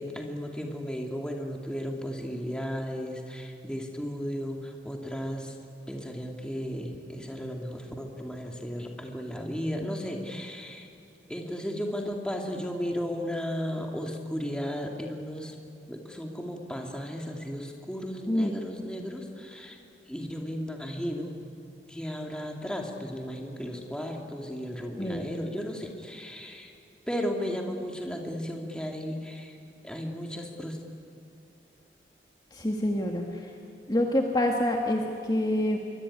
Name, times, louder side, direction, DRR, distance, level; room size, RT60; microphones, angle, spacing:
voice 1, 0.0-5.6 5.9-10.9 11.3-15.6 15.9-19.8 20.1-21.4 21.9-26.7 27.1-29.6 29.8-30.8, equal, 5° left, 1 dB, 2.4 m, -35 dB
voice 2, 25.0-25.3 32.5-33.2 33.9-35.8, left 1 dB, 20° left, 1 dB, 1.7 m, -26 dB
25.5 x 23.5 x 9.8 m, 2.6 s
head